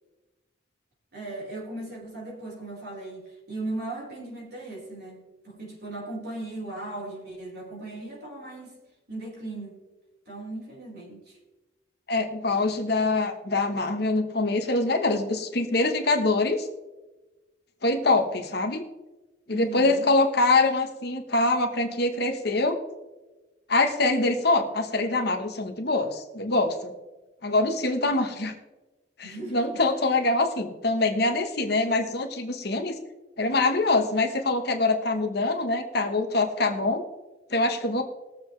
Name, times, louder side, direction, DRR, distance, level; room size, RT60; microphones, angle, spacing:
voice 1, 1.1-8.8 9.1-9.8 10.3-11.4 19.5-20.1 29.2-29.6, right 2 dB, 50° right, -3 dB, 4.7 m, -37 dB
voice 2, 12.1-16.7 17.8-18.8 19.5-22.8 23.7-26.9 27.4-28.5 29.2-32.9 33.4-37.0 37.5-38.0, left 2 dB, 50° left, 5 dB, 1.2 m, -24 dB
21.0 x 7.5 x 3.3 m, 1.1 s
head